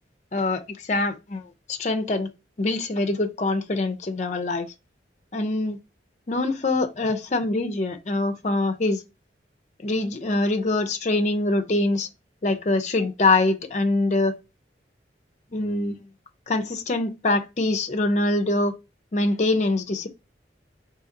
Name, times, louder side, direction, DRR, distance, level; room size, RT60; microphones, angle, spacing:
voice 1, 0.3-2.3 2.6-4.7 5.3-5.8 6.3-9.0 9.8-12.1 12.4-14.3 15.5-15.9 16.5-18.7 19.1-20.1, left 2 dB, 40° left, 0.5 m, -24 dB
3.9 x 2.8 x 3.8 m
head